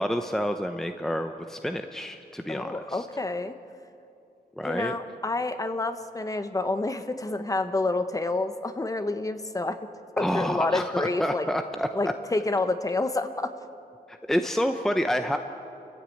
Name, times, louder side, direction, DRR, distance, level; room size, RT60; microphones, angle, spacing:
voice 1, 0.0-3.1 4.6-4.9 10.2-12.1 14.1-15.4, equal, 5° left, 6 dB, 0.8 m, -28 dB
voice 2, 2.5-3.5 4.6-9.8 10.2-11.5 11.9-13.5, left 2 dB, 20° left, 9 dB, 1.1 m, -28 dB
29.5 x 14.5 x 8.7 m, 2.8 s
wide cardioid pair, 120°, 16 cm